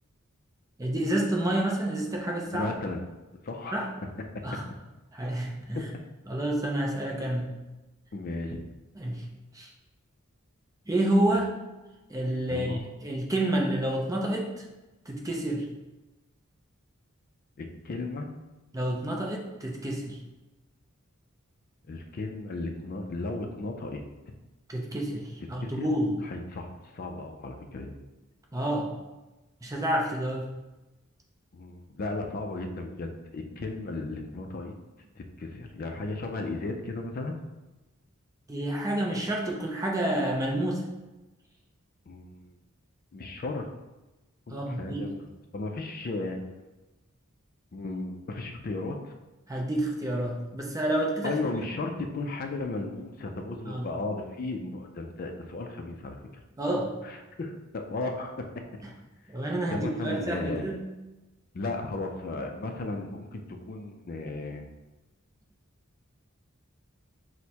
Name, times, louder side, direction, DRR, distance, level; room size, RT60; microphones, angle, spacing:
voice 1, 0.8-2.7 3.7-3.9 4.4-4.6 5.1-5.8 6.3-7.5 9.0-9.2 9.5-9.7 10.9-11.6 12.1-14.6 15.1-15.7 18.7-20.2 24.7-26.2 28.5-28.9 29.6-30.5 38.5-40.8 44.5-45.1 49.5-51.3 53.7-53.9 56.6-56.9 59.3-60.9, right 1 dB, 15° right, -1 dB, 0.5 m, -29 dB
voice 2, 2.5-3.0 3.4-3.8 5.7-5.8 8.1-8.6 12.5-12.8 17.6-18.3 21.9-24.0 25.6-25.9 26.2-28.0 31.5-34.7 35.2-37.4 42.1-42.5 43.1-43.7 44.5-46.4 47.7-49.1 51.2-56.2 57.0-58.6 59.7-60.6 61.5-64.6, left 2 dB, 45° left, 4 dB, 0.4 m, -35 dB
6.2 x 2.1 x 2.8 m, 1.1 s
head